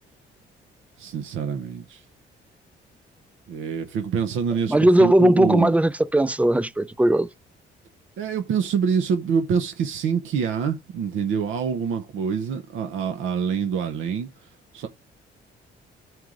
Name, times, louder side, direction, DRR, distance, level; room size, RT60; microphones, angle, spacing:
voice 1, 1.0-2.0 3.5-5.7 8.2-14.9, right 6 dB, 85° right, 0.9 m, -26 dB
voice 2, 4.7-7.3, right 1 dB, 5° right, 0.4 m, -18 dB
11.5 x 4.6 x 3.8 m
cardioid pair, 90°, 20 cm